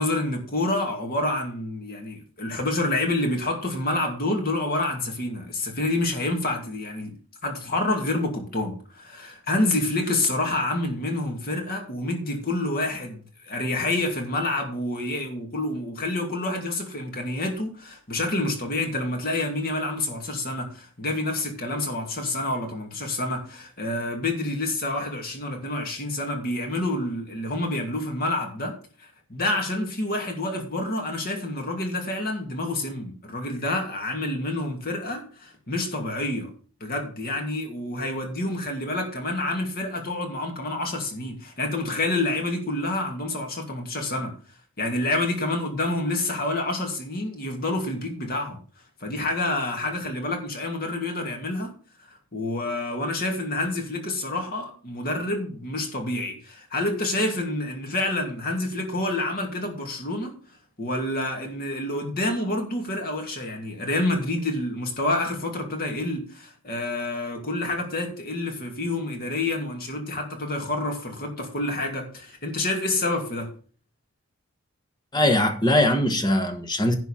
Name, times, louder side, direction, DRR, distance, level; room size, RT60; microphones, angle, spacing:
voice 1, 0.0-7.1 7.4-28.7 29.0-36.5 36.8-44.3 44.8-48.6 49.0-51.7 52.3-60.3 60.8-73.5, left 2 dB, 45° left, 2.5 m, -28 dB
voice 2, 75.1-77.0, left 1 dB, 20° left, 1.4 m, -21 dB
11.0 x 4.5 x 7.3 m
head